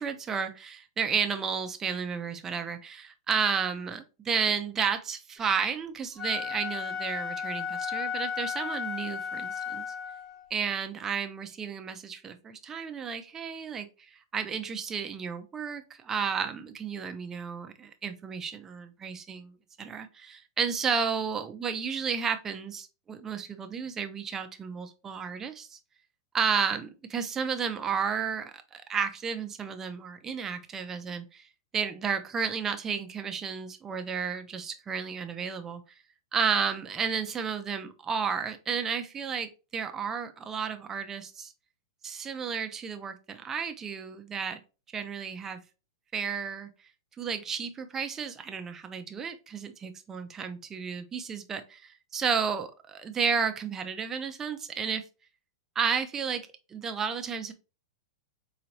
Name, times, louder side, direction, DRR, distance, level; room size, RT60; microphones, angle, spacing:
voice 1, 0.0-9.8 10.5-25.8 26.3-31.4 31.7-35.8 36.3-41.5 42.0-44.6 44.9-45.6 46.1-46.7 47.2-55.0 55.8-57.5, right 6 dB, 15° right, 7 dB, 0.5 m, -32 dB
Wind instrument woodwind instrument, 6.1-10.5, left 7 dB, 20° left, 1.7 m, -34 dB
4.5 x 3.9 x 2.7 m, 0.31 s
supercardioid pair, 150°, 3 cm